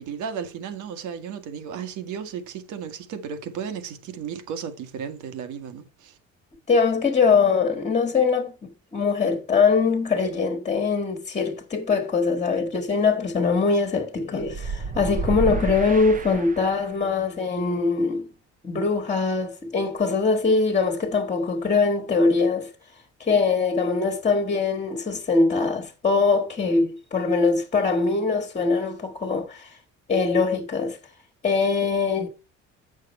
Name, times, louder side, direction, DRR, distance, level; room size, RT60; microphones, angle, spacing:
voice 1, 0.0-6.2, right 7 dB, 85° right, 1.7 m, -34 dB
voice 2, 6.7-18.3 18.6-22.7 23.2-29.7 30.1-31.0 31.4-32.3, left 4 dB, 25° left, 1.5 m, -22 dB
sound 1, 14.4-17.0, right 4 dB, 30° right, 0.8 m, -30 dB
8.5 x 6.4 x 4.3 m
cardioid pair, 135°, 29 cm